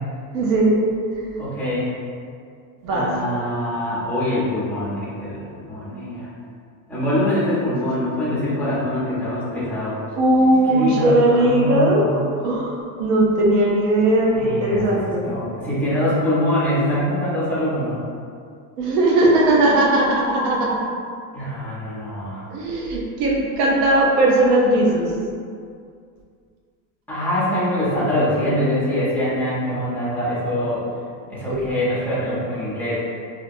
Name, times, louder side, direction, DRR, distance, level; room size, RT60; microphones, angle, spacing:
voice 1, 0.3-0.8 2.8-3.1 10.2-12.0 12.4-15.3 18.8-20.8 22.5-25.1 31.5-31.6, right 1 dB, 80° right, -2 dB, 0.7 m, -18 dB
voice 2, 1.4-1.9 2.9-6.3 6.9-9.9 10.7-12.2 14.3-15.0 15.2-18.0 21.3-22.4 27.1-30.8 31.3-33.0, left 1 dB, 5° left, -10 dB, 0.6 m, -24 dB
2.6 x 2.1 x 2.5 m, 2.3 s
supercardioid pair, 130°, 46 cm